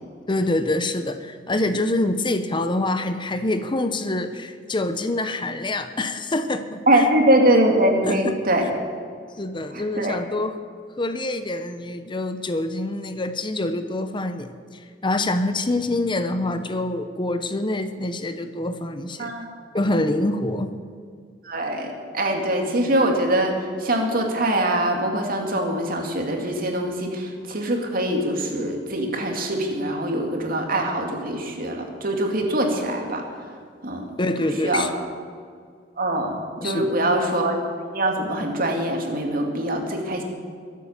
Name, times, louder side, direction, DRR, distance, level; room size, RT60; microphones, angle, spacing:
voice 1, 0.3-7.1 8.0-8.4 9.4-10.6 11.0-19.3 19.7-20.7 34.2-35.0 36.6-37.0, left 2 dB, 25° left, 9 dB, 0.7 m, -26 dB
voice 2, 6.9-8.7 10.0-10.2 19.2-19.5 21.4-21.9 22.1-23.5 23.8-33.2 33.8-34.0 34.4-34.9 36.0-36.3 36.6-37.6 37.9-40.2, right 1 dB, 50° right, 2 dB, 2.5 m, -23 dB
22.5 x 8.5 x 7.3 m, 2.1 s
head